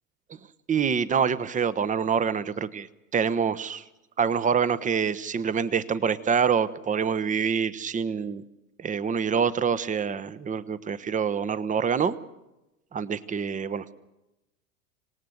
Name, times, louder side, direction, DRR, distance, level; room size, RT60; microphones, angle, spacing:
voice 1, 0.7-2.9 3.1-3.8 4.2-8.4 8.8-12.1 12.9-13.9, right 6 dB, 20° right, 15 dB, 1.0 m, -26 dB
26.5 x 18.5 x 7.9 m, 0.94 s
hypercardioid pair, 95°, 43 cm